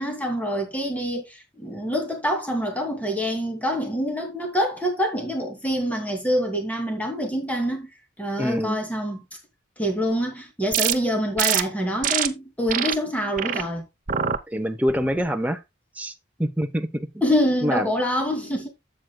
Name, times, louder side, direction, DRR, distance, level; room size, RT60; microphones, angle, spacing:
voice 1, 0.0-7.9 8.2-9.2 9.8-13.8 17.2-18.7, equal, 10° left, 2.5 m, -26 dB
voice 2, 8.4-8.8 14.5-15.6 16.0-16.1 16.4-17.1 17.6-17.9, equal, 10° right, 0.8 m, -25 dB
sound 1, 10.7-10.9 11.4-11.6 12.0-12.3 12.7-12.9 13.4-13.6 14.1-14.4 14.9-15.2, right 9 dB, 45° right, 0.8 m, -24 dB
12.5 x 7.8 x 2.3 m
head